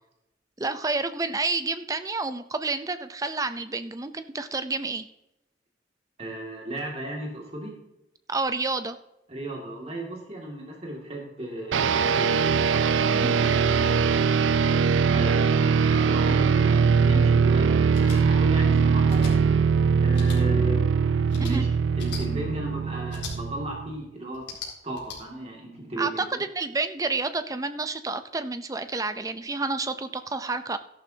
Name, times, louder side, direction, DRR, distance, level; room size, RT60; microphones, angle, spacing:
voice 1, 0.6-5.1 8.3-9.0 21.4-21.6 26.0-30.8, right 3 dB, 20° right, 10 dB, 0.5 m, -29 dB
voice 2, 6.2-7.7 9.3-14.4 15.1-19.5 20.0-21.7 22.0-24.5 24.8-26.4, right 1 dB, 35° right, -1 dB, 2.3 m, -35 dB
sound 1, 11.7-23.9, right 6 dB, 85° right, 0.4 m, -21 dB
sound 2, 17.9-18.2 19.1-19.3 20.1-20.4 21.3-21.5 22.0-22.2 23.1-23.3 24.3-25.2, left 4 dB, 70° left, 4.0 m, -38 dB
13.5 x 11.5 x 2.8 m, 0.87 s
head